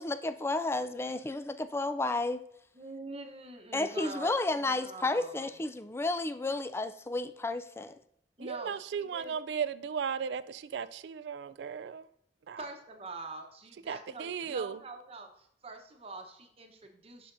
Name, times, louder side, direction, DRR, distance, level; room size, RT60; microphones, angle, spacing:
voice 1, 0.0-2.4 3.7-7.9, left 2 dB, 15° left, 0.4 m, -32 dB
voice 2, 2.7-5.5 8.4-9.4 12.6-17.3, right 3 dB, 35° right, 0.9 m, -45 dB
voice 3, 8.4-12.1 12.5-12.6 13.9-14.8, right 7 dB, 70° right, 0.3 m, -36 dB
11.5 x 4.9 x 2.6 m
head